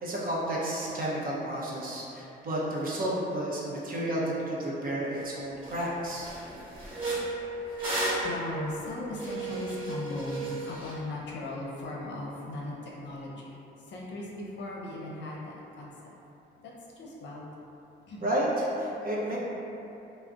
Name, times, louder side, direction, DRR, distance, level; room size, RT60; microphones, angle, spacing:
voice 1, 0.0-6.3 18.2-19.4, right 1 dB, 45° right, -5 dB, 0.7 m, -31 dB
sound 1, 5.2-5.3 5.6-5.8 6.2-10.9, right 2 dB, 25° right, 1.3 m, -34 dB
voice 2, 8.2-13.4 13.9-15.9 16.6-17.5 18.1-18.3 19.3-19.4, left 2 dB, 65° left, -4 dB, 0.6 m, -38 dB
2.3 x 2.1 x 3.7 m, 2.9 s
cardioid pair, 90°, 20 cm